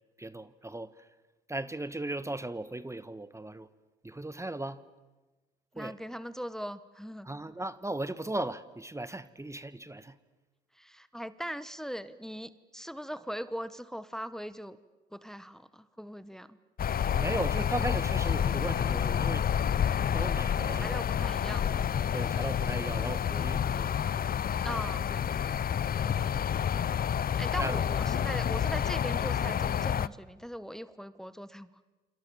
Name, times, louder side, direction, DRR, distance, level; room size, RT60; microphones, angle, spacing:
voice 1, 0.2-1.1 1.5-3.7 4.0-4.8 5.7-6.0 7.2-10.2 17.0-19.5 20.1-21.0 22.1-24.3 24.7-24.8 27.6-27.8, right 2 dB, 15° right, 14 dB, 1.4 m, -37 dB
voice 2, 5.7-7.3 10.7-14.8 15.1-16.6 20.8-21.9 24.6-25.6 26.0-26.3 27.4-31.7, equal, ahead, 14 dB, 1.4 m, -40 dB
sound 1, 16.8-30.1, left 8 dB, 45° left, 0.8 m, -29 dB
28.0 x 26.5 x 7.2 m, 1.2 s
hypercardioid pair, 55°, 21 cm